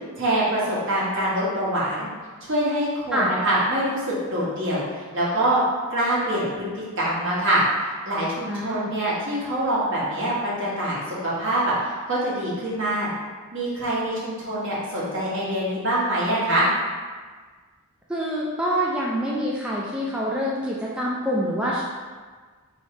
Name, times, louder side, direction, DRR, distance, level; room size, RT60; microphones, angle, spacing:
voice 1, 0.2-2.1 2.4-5.6 5.9-13.1 13.5-16.7, right 1 dB, 60° right, -7 dB, 1.3 m, -25 dB
voice 2, 8.5-8.9 18.1-21.8, equal, 5° right, -6 dB, 0.3 m, -26 dB
3.2 x 2.8 x 4.2 m, 1.4 s
head